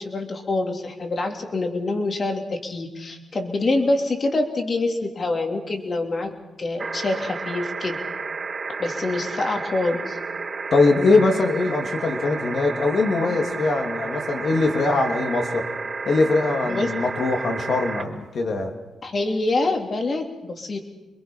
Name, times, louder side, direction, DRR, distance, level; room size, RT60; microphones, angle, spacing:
voice 1, 0.0-8.0 8.8-10.2 16.7-16.9 19.0-20.8, left 2 dB, 45° left, 3 dB, 3.1 m, -26 dB
sound 1, 6.8-18.0 19.5-19.6, right 4 dB, 50° right, 3.8 m, -31 dB
voice 2, 10.7-15.6 16.1-18.7, left 3 dB, 60° left, 3 dB, 2.9 m, -21 dB
26.0 x 22.0 x 5.6 m, 1.1 s
cardioid pair, 80°, 0 cm